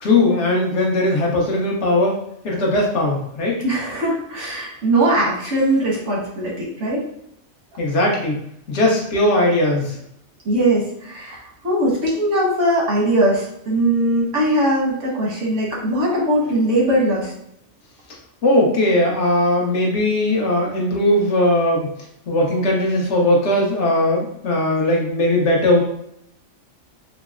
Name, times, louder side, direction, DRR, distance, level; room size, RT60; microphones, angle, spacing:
voice 1, 0.0-2.2 2.4-3.5 7.8-8.4 8.7-10.0 18.4-21.9 22.3-25.8, left 1 dB, 70° left, -2 dB, 1.1 m, -18 dB
voice 2, 3.6-7.0 10.4-17.3, right 1 dB, 90° right, -4 dB, 1.5 m, -20 dB
4.5 x 2.0 x 2.4 m, 0.74 s
omnidirectional pair, 1.3 m